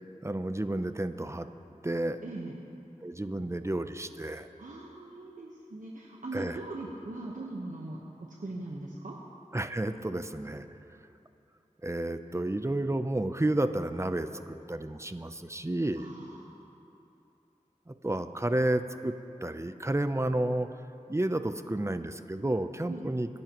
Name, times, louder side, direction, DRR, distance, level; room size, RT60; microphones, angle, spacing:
voice 1, 0.2-1.5 1.8-2.2 3.0-4.5 6.3-6.6 9.5-10.7 11.8-16.1 17.9-19.1 19.4-20.7 21.1-23.3, right 1 dB, 20° right, 10 dB, 0.6 m, -31 dB
voice 2, 2.2-2.6 4.6-9.2 16.0-16.7 22.9-23.1, right 2 dB, 75° right, -3 dB, 1.2 m, -41 dB
26.0 x 11.0 x 3.1 m, 2.8 s
wide cardioid pair, 40°, 14 cm